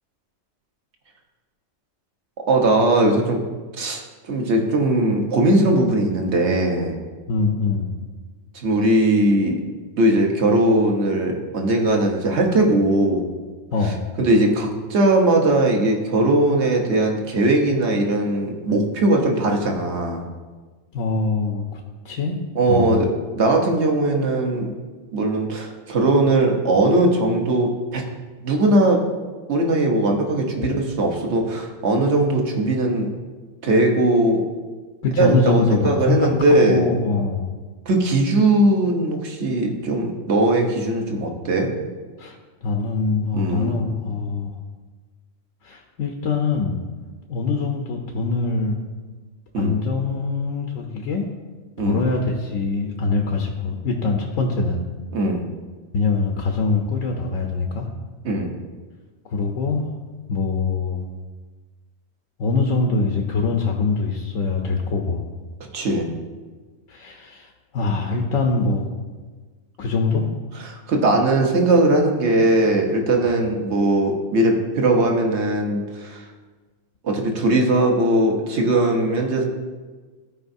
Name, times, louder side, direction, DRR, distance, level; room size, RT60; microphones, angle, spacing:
voice 1, 2.5-3.4 3.8-4.0 4.3-6.9 8.6-9.6 10.0-13.2 14.2-20.2 22.6-23.1 23.4-24.7 25.1-28.0 28.4-29.0 29.5-33.1 33.6-34.4 35.2-36.9 37.9-41.7 43.3-43.8 49.5-49.7 51.8-52.0 55.1-55.4 58.2-58.5 65.7-66.1 70.9-76.2 77.0-79.4, right 2 dB, 60° right, 2 dB, 1.3 m, -19 dB
voice 2, 7.3-7.9 13.7-14.1 20.9-22.4 22.7-23.0 35.0-37.5 42.2-44.5 45.6-46.8 47.3-48.8 49.6-51.3 51.8-54.8 55.9-57.9 59.2-59.9 60.3-61.0 62.4-65.2 66.9-68.9 69.8-70.3, left 4 dB, 80° left, 1 dB, 1.1 m, -23 dB
14.0 x 4.8 x 2.7 m, 1.4 s
omnidirectional pair, 1.4 m